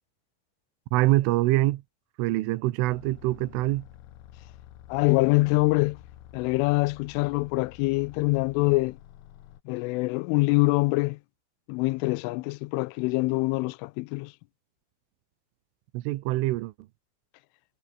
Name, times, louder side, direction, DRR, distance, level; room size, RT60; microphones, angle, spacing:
voice 1, 0.9-1.8 2.2-3.9 15.9-16.7, right 18 dB, 85° right, 3.4 m, -24 dB
sound 1, 2.9-9.6, left 12 dB, 65° left, 3.5 m, -49 dB
voice 2, 4.9-6.0 6.3-9.0 9.7-11.2 11.7-14.3, left 23 dB, 80° left, 3.1 m, -24 dB
omnidirectional pair, 5.8 m